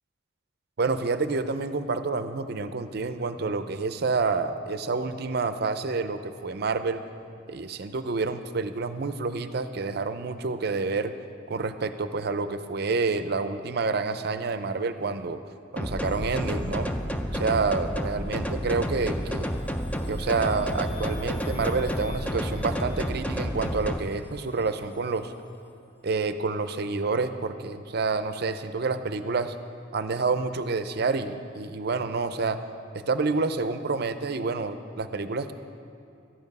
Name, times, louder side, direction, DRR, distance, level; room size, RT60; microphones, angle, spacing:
voice 1, 0.8-7.0 7.5-11.1 11.5-15.4 15.7-16.9 17.3-19.5 20.1-25.3 26.0-29.5 29.9-32.6 32.9-35.5, right 4 dB, 55° right, 10 dB, 0.5 m, -28 dB
sound 1, 15.8-24.0, equal, 10° left, 0.5 m, -30 dB
sound 2, 16.0-25.7, equal, 55° left, 1.5 m, -48 dB
13.0 x 9.6 x 5.4 m, 2.6 s
head